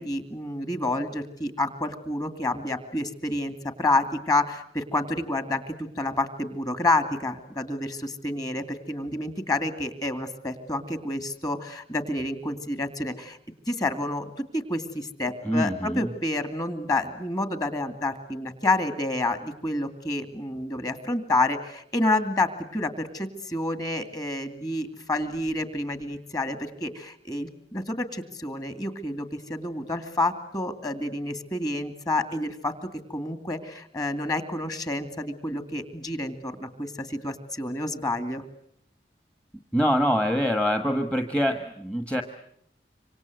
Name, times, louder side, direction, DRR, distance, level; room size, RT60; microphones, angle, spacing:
voice 1, 0.0-13.4 13.7-32.7 33.1-38.4, left 2 dB, 20° left, 9 dB, 2.6 m, -29 dB
voice 2, 15.4-16.1 39.7-42.2, equal, 5° left, 6 dB, 1.4 m, -24 dB
26.5 x 26.0 x 8.0 m, 0.71 s
head